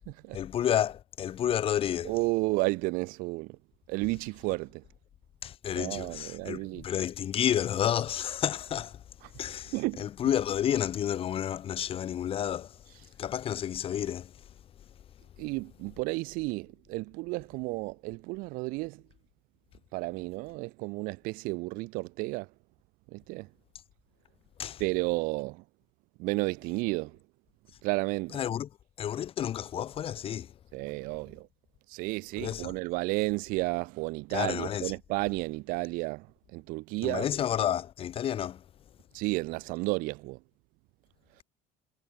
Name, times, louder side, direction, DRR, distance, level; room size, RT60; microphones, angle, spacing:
voice 1, 0.3-2.1 5.4-9.0 9.4-12.8 13.2-14.3 24.6-24.8 28.3-28.7 29.0-30.5 32.4-32.7 34.3-34.9 37.0-38.6, left 10 dB, 40° left, 3.6 m, -30 dB
voice 2, 2.0-3.6 3.9-4.8 5.8-6.8 9.7-10.0 15.4-19.0 19.9-22.5 23.1-23.5 24.8-25.6 26.2-27.2 27.8-28.4 30.7-31.5 31.9-36.3 36.5-37.3 39.1-40.4, right 24 dB, 75° right, 1.8 m, -32 dB
cardioid pair, 140°, 15 cm